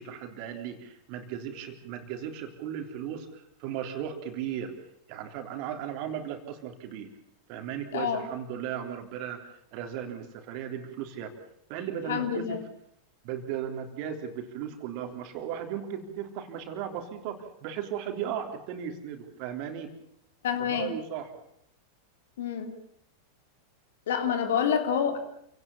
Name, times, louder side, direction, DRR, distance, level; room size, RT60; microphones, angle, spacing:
voice 1, 0.0-4.7 5.1-7.1 7.5-11.4 11.7-12.6 13.2-19.9 20.6-21.3, right 9 dB, 45° right, 5 dB, 3.5 m, -36 dB
voice 2, 12.1-12.6 20.4-20.9 22.4-22.7 24.1-25.2, left 8 dB, 60° left, 7 dB, 3.1 m, -27 dB
28.0 x 18.0 x 7.2 m, 0.71 s
figure-of-eight pair, 90°, 0 cm